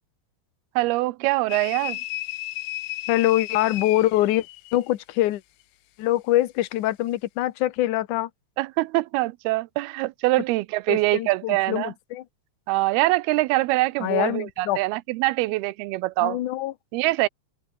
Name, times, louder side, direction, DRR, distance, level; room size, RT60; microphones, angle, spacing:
voice 1, 0.8-2.0 8.6-11.9 12.7-16.4 16.9-17.3, right 20 dB, 85° right, 2.6 m, -24 dB
sound 1, 1.5-4.8, left 17 dB, 90° left, 2.9 m, -33 dB
voice 2, 3.1-4.5 4.7-5.4 6.0-8.3 10.9-12.2 14.0-14.8 16.2-16.7, left 15 dB, 65° left, 2.3 m, -24 dB
omnidirectional pair, 4.5 m